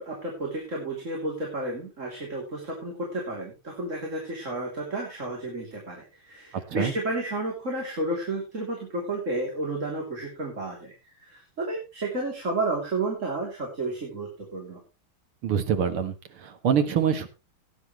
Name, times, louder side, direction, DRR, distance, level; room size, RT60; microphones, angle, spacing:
voice 1, 0.0-14.8, right 2 dB, 35° right, -1 dB, 3.5 m, -32 dB
voice 2, 15.4-17.3, right 7 dB, 85° right, 8 dB, 2.4 m, -25 dB
17.5 x 9.9 x 3.2 m, 0.27 s
omnidirectional pair, 2.3 m